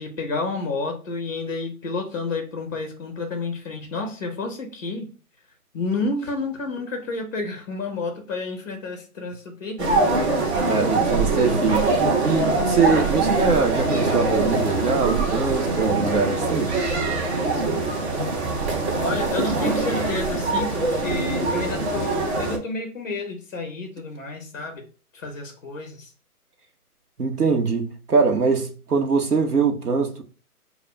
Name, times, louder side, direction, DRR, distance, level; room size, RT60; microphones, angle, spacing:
voice 1, 0.0-5.1 5.7-10.2 19.0-24.8 25.1-26.1, left 3 dB, 10° left, 0.5 m, -30 dB
sound 1, 9.8-22.6, right 3 dB, 45° right, 1.0 m, -23 dB
voice 2, 10.6-11.9 12.2-16.8 27.2-30.2, right 4 dB, 80° right, 1.1 m, -23 dB
6.6 x 2.4 x 2.2 m
figure-of-eight pair, 145°, 45 cm